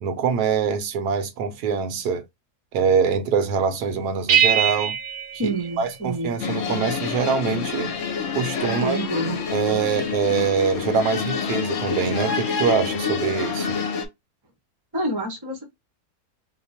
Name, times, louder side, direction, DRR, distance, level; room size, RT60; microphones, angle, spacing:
voice 1, 0.0-2.2 2.7-4.9 5.4-7.9 8.3-9.0 9.5-13.8, right 6 dB, 85° right, 1.2 m, -24 dB
sound 1, 4.3-6.5, right 8 dB, 65° right, 0.7 m, -23 dB
voice 2, 5.4-6.4 8.7-9.4 14.9-15.7, right 2 dB, 25° right, 0.5 m, -27 dB
sound 2, 6.4-14.1, left 5 dB, 60° left, 0.9 m, -27 dB
2.9 x 2.1 x 4.1 m
omnidirectional pair, 1.6 m